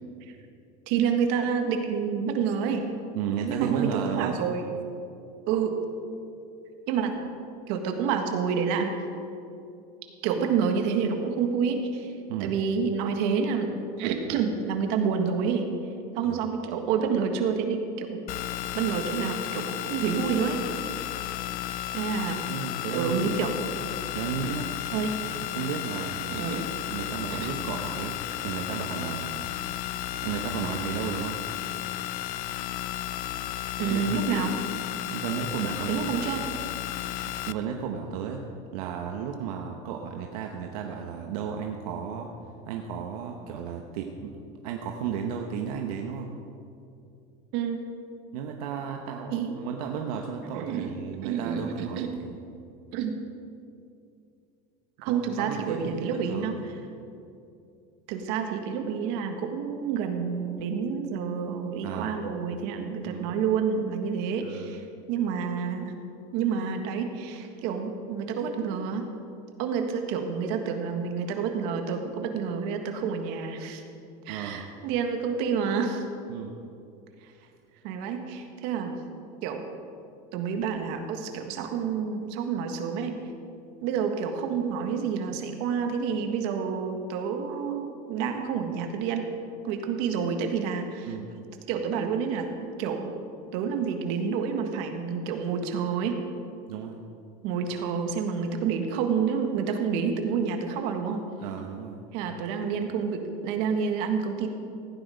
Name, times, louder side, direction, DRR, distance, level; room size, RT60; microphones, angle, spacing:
voice 1, 0.9-2.8 3.4-4.6 5.5-5.8 6.9-7.2 7.7-8.9 10.2-12.1 12.4-13.7 14.0-15.7 16.2-18.2 18.8-20.6 21.9-22.4 22.9-23.5 24.9-25.1 26.3-26.7 27.3-27.5 33.8-34.6 35.9-36.5 47.5-47.8 49.3-49.6 50.5-50.9 51.2-52.1 52.9-53.2 55.0-56.8 58.1-65.9 66.3-69.1 69.6-73.8 74.3-76.0 77.8-79.0 79.4-79.6 80.3-83.2 83.8-89.3 89.6-92.5 92.8-93.1 93.5-96.2 97.4-101.2 102.1-104.5, right 6 dB, 70° right, 5 dB, 1.7 m, -28 dB
voice 2, 3.1-4.4 12.3-12.5 16.2-16.4 22.5-23.4 24.1-24.7 25.5-26.6 26.9-29.5 30.2-31.4 33.9-34.1 35.1-36.0 37.5-38.4 38.7-42.3 42.7-44.3 44.6-46.3 48.3-52.4 55.1-56.5 61.8-62.1 63.0-63.3 64.4-64.7 74.3-74.7 76.3-76.6 91.1-91.3 96.7-97.0 101.4-102.0, right 7 dB, 85° right, 2 dB, 1.1 m, -34 dB
sound 1, 18.3-37.5, left 13 dB, 50° left, 0.5 m, -33 dB
16.0 x 10.0 x 5.2 m, 2.5 s
supercardioid pair, 130°, 19 cm